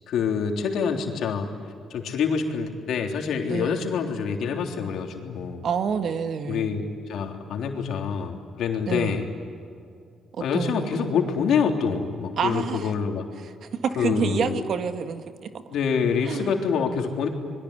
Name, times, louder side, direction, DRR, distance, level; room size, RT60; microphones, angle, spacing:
voice 1, 0.1-1.5 1.9-5.6 6.5-9.3 10.4-13.3 14.0-14.6 15.7-17.3, left 6 dB, 75° left, 3 dB, 3.5 m, -26 dB
voice 2, 3.5-3.9 5.6-6.8 8.9-9.2 10.5-11.1 12.4-12.9 13.4-15.5 16.3-16.5, right 6 dB, 60° right, 8 dB, 1.8 m, -28 dB
27.0 x 22.5 x 9.9 m, 2.3 s
cardioid pair, 90°, 0 cm